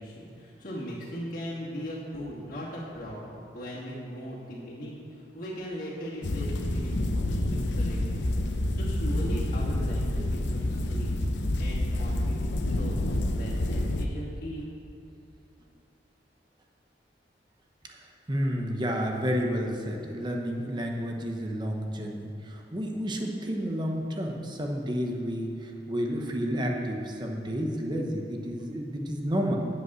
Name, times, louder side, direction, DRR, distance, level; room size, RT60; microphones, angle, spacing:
voice 1, 0.0-13.0 13.4-14.7, equal, 50° left, -7 dB, 2.3 m, -39 dB
sound 1, 6.2-14.1, left 1 dB, 80° left, 0.8 m, -28 dB
voice 2, 18.3-29.6, equal, 25° right, 1 dB, 1.0 m, -30 dB
10.5 x 8.1 x 6.3 m, 2.7 s
head